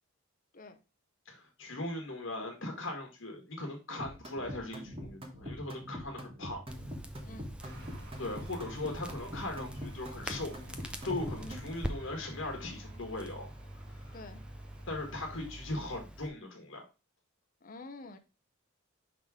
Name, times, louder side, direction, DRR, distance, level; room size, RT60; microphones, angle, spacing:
voice 1, 1.2-6.6 8.2-10.5 11.0-13.5 14.0-14.1 14.9-16.8, left 2 dB, 60° left, 2 dB, 1.5 m, -39 dB
sound 1, 4.0-11.7, equal, 25° right, 1.3 m, -43 dB
Crackle, 6.7-16.3, right 1 dB, 5° right, 0.5 m, -44 dB
sound 2, 7.6-15.6, right 2 dB, 85° right, 2.7 m, -58 dB
voice 2, 14.1-14.5 17.6-18.2, left 2 dB, 40° left, 8 dB, 0.6 m, -48 dB
5.9 x 3.7 x 4.8 m, 0.30 s
head